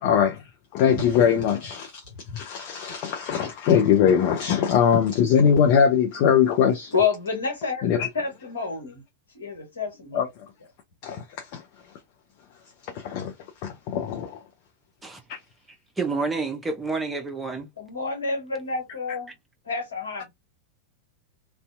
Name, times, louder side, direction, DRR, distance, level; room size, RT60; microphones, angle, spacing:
voice 1, 0.0-0.4 0.7-2.0 2.3-6.9 7.8-8.1 10.1-10.3 11.0-11.6 12.9-13.3 13.6-14.4 15.3-15.4, left 8 dB, 45° left, 0.5 m, -21 dB
voice 2, 6.9-9.0 9.3-10.3 17.8-19.3 19.6-20.3, left 5 dB, 70° left, 1.1 m, -29 dB
voice 3, 16.0-17.7, right 4 dB, 10° right, 0.6 m, -28 dB
2.6 x 2.1 x 2.5 m
figure-of-eight pair, 90°, 0 cm